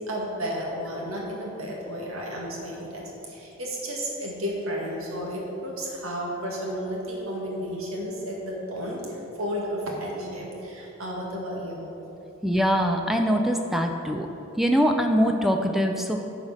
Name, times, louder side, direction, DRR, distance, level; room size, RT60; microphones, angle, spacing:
voice 1, 0.1-11.9, equal, 85° right, -2 dB, 1.9 m, -32 dB
voice 2, 12.4-14.3 14.6-16.2, equal, ahead, 3 dB, 0.4 m, -23 dB
9.5 x 5.0 x 6.2 m, 2.9 s
head